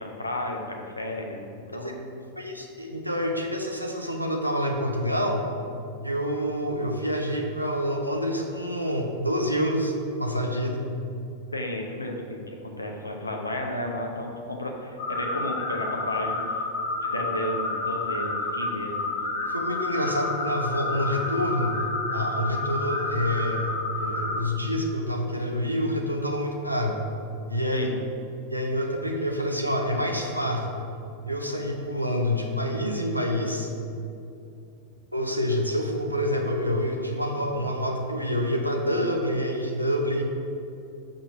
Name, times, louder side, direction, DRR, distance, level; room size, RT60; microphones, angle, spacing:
voice 1, 0.0-2.3 11.5-16.6 17.1-19.6 27.7-27.9, left 1 dB, 80° left, 1 dB, 0.8 m, -33 dB
voice 2, 2.4-5.5 6.0-9.9 10.2-10.9 19.5-21.8 22.1-27.0 27.5-27.9 28.5-30.9 31.3-33.7 35.1-40.2, equal, 90° right, 2 dB, 0.6 m, -27 dB
sound 1, 15.0-24.4, left 2 dB, 40° left, 1.2 m, -30 dB
5.7 x 3.8 x 6.0 m, 2.7 s
figure-of-eight pair, 90°, 0 cm